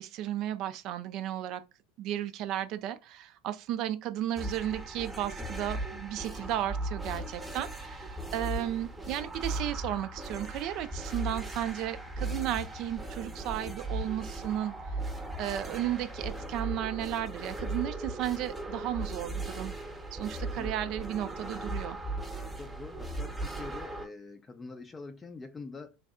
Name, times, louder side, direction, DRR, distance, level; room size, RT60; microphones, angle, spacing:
voice 1, 0.0-1.6 2.0-15.0 15.4-19.7 20.1-22.0, right 12 dB, 50° right, 0.3 m, -34 dB
sound 1, 4.4-24.1, right 2 dB, 15° right, 0.8 m, -37 dB
voice 2, 5.4-5.8 20.4-20.9 22.5-26.0, left 3 dB, 20° left, 0.4 m, -45 dB
3.2 x 2.6 x 2.3 m
hypercardioid pair, 80°, 0 cm